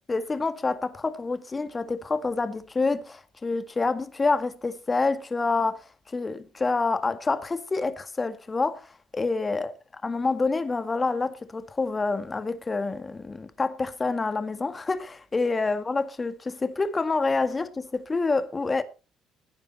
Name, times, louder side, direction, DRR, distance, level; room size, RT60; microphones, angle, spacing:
voice 1, 0.0-9.7 10.0-18.8, left 3 dB, 30° left, 1.9 m, -27 dB
17.0 x 9.6 x 4.3 m
hypercardioid pair, 60°, 0 cm